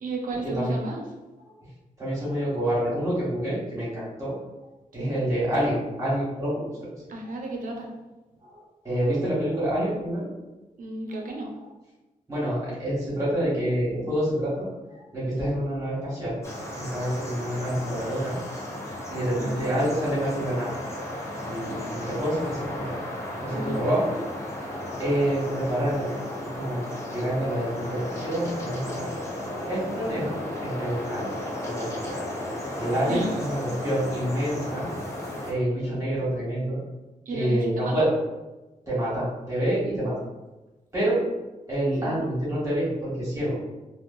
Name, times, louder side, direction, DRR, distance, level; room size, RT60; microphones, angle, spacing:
voice 1, 0.0-1.0 4.9-5.1 7.1-7.9 10.8-11.5 19.4-19.7 23.5-24.0 33.1-33.4 37.3-38.1 42.0-42.1, right 2 dB, 70° right, 0 dB, 0.5 m, -33 dB
voice 2, 2.0-4.3 4.9-6.9 8.4-10.3 12.3-14.7 14.9-16.4 16.7-18.3 19.1-20.7 21.4-23.0 23.4-24.2 25.0-26.1 26.5-26.8 27.1-29.1 29.7-31.3 31.6-32.2 32.8-34.9 35.4-36.8 37.3-38.1 38.9-40.2 40.9-41.2 41.7-43.6, right 1 dB, 25° right, -9 dB, 1.3 m, -27 dB
sound 1, 16.4-35.5, left 1 dB, 20° left, 0.4 m, -34 dB
2.9 x 2.1 x 2.5 m, 1.1 s
wide cardioid pair, 175°, 14 cm